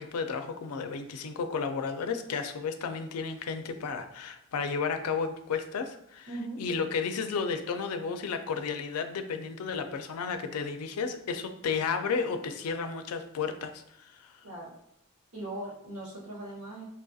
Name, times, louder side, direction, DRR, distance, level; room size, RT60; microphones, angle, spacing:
voice 1, 0.0-6.3 6.6-14.3, left 5 dB, 85° left, 7 dB, 0.4 m, -33 dB
voice 2, 6.3-6.7 14.4-14.7 15.3-16.8, right 1 dB, 75° right, -5 dB, 1.2 m, -39 dB
4.2 x 2.6 x 2.3 m, 0.75 s
head